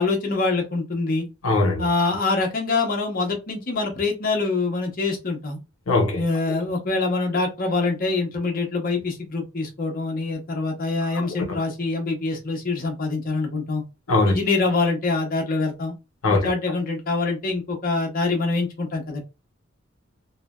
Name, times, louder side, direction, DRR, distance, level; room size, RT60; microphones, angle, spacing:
voice 1, 0.0-1.3 1.8-5.6 6.2-13.8 14.2-15.9 16.3-19.2, left 3 dB, 45° left, 0.8 m, -25 dB
voice 2, 1.4-1.9 5.9-6.6 11.5-11.6 14.1-14.3 16.2-16.4, left 2 dB, 80° left, 0.8 m, -21 dB
3.2 x 2.1 x 2.3 m
head